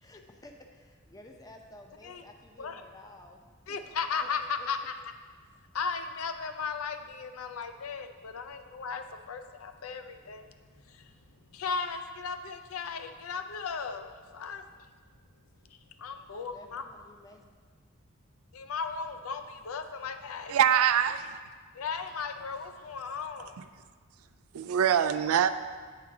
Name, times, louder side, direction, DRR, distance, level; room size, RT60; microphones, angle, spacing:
voice 1, 0.0-3.8 4.2-4.9 16.3-17.4, left 1 dB, 15° left, 2 dB, 0.6 m, -52 dB
voice 2, 3.7-4.8 5.7-10.5 10.9-11.1 11.5-14.1 14.3-14.6 16.0-16.8 18.5-20.6 21.7-23.6, left 5 dB, 80° left, 8 dB, 0.5 m, -36 dB
voice 3, 20.5-21.4 24.5-25.5, right 9 dB, 85° right, 11 dB, 0.4 m, -24 dB
7.5 x 3.7 x 5.9 m, 1.5 s
head